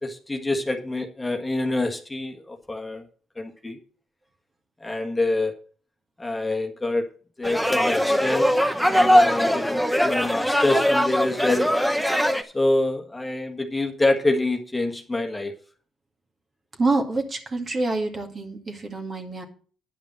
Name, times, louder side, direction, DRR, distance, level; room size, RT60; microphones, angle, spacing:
voice 1, 0.0-3.0 3.4-3.8 4.8-5.5 6.2-7.0 7.4-8.6 8.9-11.7 12.4-15.5, left 2 dB, 15° left, 2 dB, 1.5 m, -26 dB
sound 1, 7.4-12.4, equal, ahead, 0.9 m, -21 dB
voice 2, 16.8-19.4, right 3 dB, 35° right, 3 dB, 2.0 m, -26 dB
10.0 x 5.3 x 7.4 m, 0.42 s
cardioid pair, 90°, 0 cm